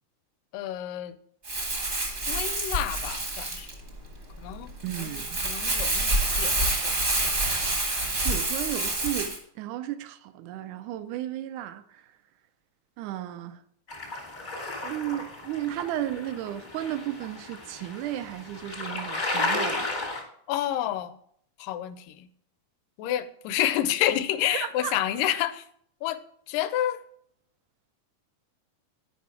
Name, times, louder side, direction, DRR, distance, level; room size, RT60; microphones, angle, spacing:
voice 1, 0.5-1.2 2.3-3.7 4.4-5.1 5.4-6.1 6.4-7.0 20.5-21.2 21.6-22.3 23.0-25.6 26.0-26.2 26.5-27.0, left 12 dB, 85° left, 2.1 m, -29 dB
Crumpling crinkling, 1.4-9.4, right 2 dB, 50° right, 0.8 m, -27 dB
voice 2, 4.8-5.4 8.2-12.1 13.0-13.6 14.8-19.9 24.5-25.0, right 12 dB, 80° right, 1.8 m, -34 dB
sound 1, 13.9-20.2, left 2 dB, 60° left, 0.4 m, -33 dB
9.4 x 5.1 x 4.7 m
omnidirectional pair, 3.8 m